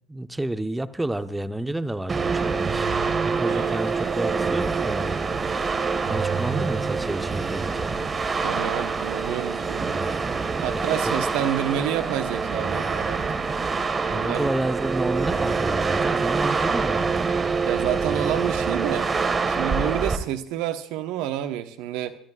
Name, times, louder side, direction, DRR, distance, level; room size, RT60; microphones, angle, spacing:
voice 1, 0.1-5.2 6.1-8.0 10.7-11.3 14.1-17.1, right 1 dB, 10° right, 9 dB, 1.0 m, -30 dB
sound 1, 1.8-1.9 2.6-6.9, right 6 dB, 45° right, 1.1 m, -35 dB
sound 2, 2.1-20.2, right 4 dB, 30° right, 1.7 m, -25 dB
voice 2, 3.4-3.8 6.8-7.0 8.4-9.9 10.6-13.2 14.1-14.5 17.4-19.1 19.5-22.2, right 11 dB, 65° right, 8 dB, 1.1 m, -29 dB
26.5 x 13.0 x 2.4 m, 0.66 s
hypercardioid pair, 60°, 0 cm